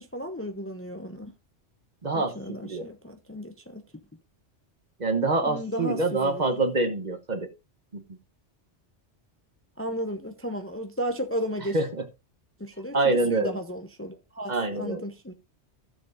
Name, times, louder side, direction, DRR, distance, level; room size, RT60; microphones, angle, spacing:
voice 1, 0.0-1.3 2.1-3.8 5.4-6.6 9.8-11.8 12.6-13.0 13.3-15.3, equal, 15° left, 0.7 m, -34 dB
voice 2, 2.0-2.8 5.0-7.5 7.9-8.0 11.7-12.0 12.9-13.6 14.5-15.0, right 2 dB, 40° right, 1.2 m, -26 dB
15.5 x 7.0 x 2.6 m
omnidirectional pair, 1.2 m